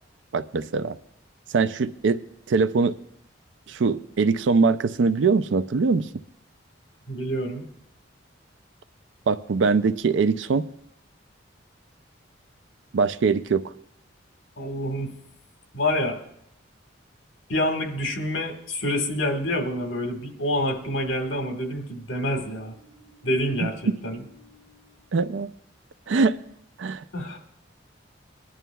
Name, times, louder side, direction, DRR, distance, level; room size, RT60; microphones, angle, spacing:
voice 1, 0.3-1.0 1.5-2.2 2.5-2.9 3.7-6.1 9.3-10.7 12.9-13.7 23.6-24.0 25.1-25.5 26.1-26.4 26.8-27.0, right 4 dB, 75° right, 0.4 m, -22 dB
voice 2, 7.1-7.7 14.6-15.2 15.7-16.2 17.5-24.8 27.1-27.4, left 1 dB, 75° left, 1.6 m, -28 dB
20.0 x 11.0 x 2.3 m
head